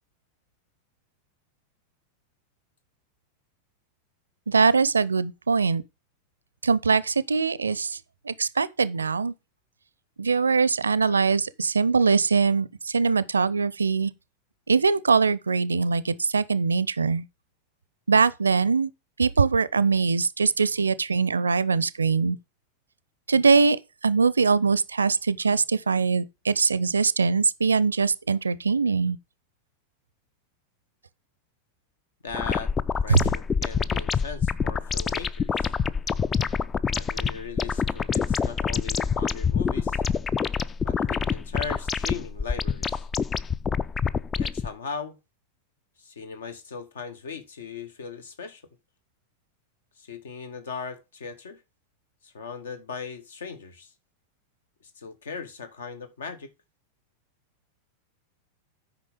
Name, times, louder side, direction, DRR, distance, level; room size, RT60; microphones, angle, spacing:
voice 1, 4.5-5.8 6.6-8.0 8.3-9.3 10.2-14.1 14.7-17.2 18.1-18.9 19.2-22.4 23.3-29.2 33.1-33.2, right 5 dB, 75° right, 0.5 m, -22 dB
voice 2, 32.2-32.7 33.0-35.7 36.9-40.0 40.8-43.1 44.4-45.2 46.0-48.6 50.0-51.6 52.2-53.9 54.8-56.5, left 5 dB, 65° left, 1.4 m, -38 dB
sound 1, 32.3-44.7, left 6 dB, 20° left, 0.4 m, -27 dB
8.8 x 5.4 x 5.3 m
figure-of-eight pair, 90°, 0 cm